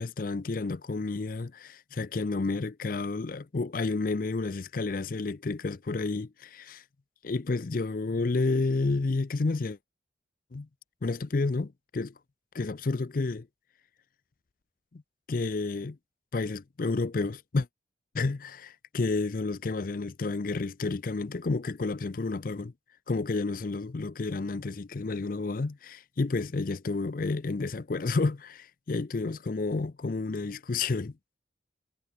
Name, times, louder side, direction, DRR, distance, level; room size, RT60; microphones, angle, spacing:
voice 1, 0.0-6.8 7.2-9.8 10.5-10.7 11.0-12.1 12.5-13.5 14.9-15.0 15.3-16.0 16.3-17.7 18.1-22.7 23.1-31.1, left 3 dB, 45° left, 0.5 m, -30 dB
head